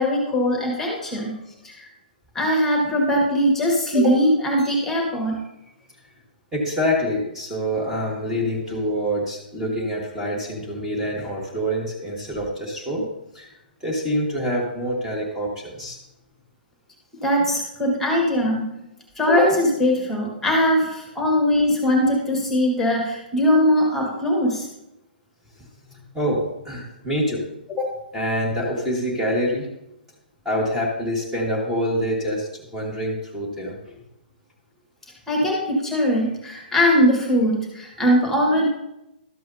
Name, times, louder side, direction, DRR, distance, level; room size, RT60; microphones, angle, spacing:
voice 1, 0.0-1.4 1.6-1.9 2.3-5.4 17.2-18.7 19.1-24.7 27.7-28.0 35.3-38.7, equal, 5° left, 0 dB, 1.6 m, -20 dB
voice 2, 6.5-13.1 13.3-13.5 13.8-16.0 25.9-27.4 28.1-29.7 30.4-34.0, equal, 10° right, -3 dB, 1.6 m, -26 dB
12.5 x 7.5 x 2.7 m, 0.87 s
figure-of-eight pair, 120°, 5 cm